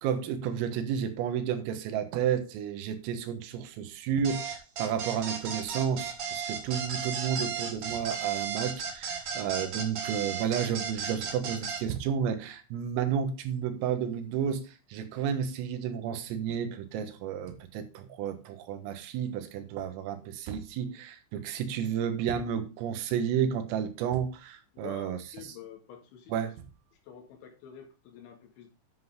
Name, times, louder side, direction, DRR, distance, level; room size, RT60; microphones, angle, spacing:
voice 1, 0.0-25.2 26.3-26.5, right 8 dB, 85° right, 4.0 m, -31 dB
sound 1, 4.2-11.8, right 6 dB, 60° right, 1.9 m, -35 dB
voice 2, 24.7-26.5 27.0-28.7, left 8 dB, 70° left, 4.2 m, -48 dB
10.5 x 8.0 x 3.6 m
omnidirectional pair, 5.8 m